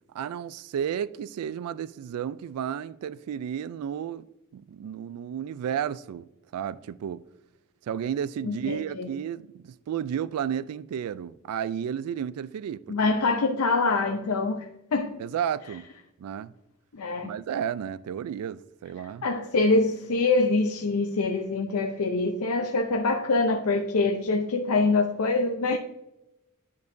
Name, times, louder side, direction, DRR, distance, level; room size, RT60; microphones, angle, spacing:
voice 1, 0.1-4.3 4.5-7.2 7.8-13.1 15.2-15.9 16.2-16.5 17.2-19.3, right 8 dB, 85° right, 0.3 m, -32 dB
voice 2, 8.4-9.1 12.9-15.2 16.9-17.3 19.2-25.8, left 3 dB, 80° left, 0.6 m, -25 dB
10.5 x 5.3 x 2.6 m
head